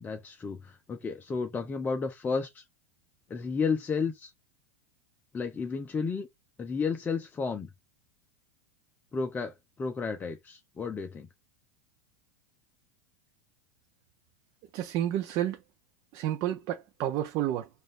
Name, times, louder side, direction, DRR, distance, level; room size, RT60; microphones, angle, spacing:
voice 1, 0.0-2.6 3.3-4.3 5.3-6.3 6.6-7.7 9.1-11.3, left 5 dB, 20° left, 0.6 m, -32 dB
voice 2, 14.7-15.6 16.1-17.7, right 12 dB, 50° right, 0.6 m, -30 dB
4.9 x 2.5 x 3.7 m
hypercardioid pair, 100°, 9 cm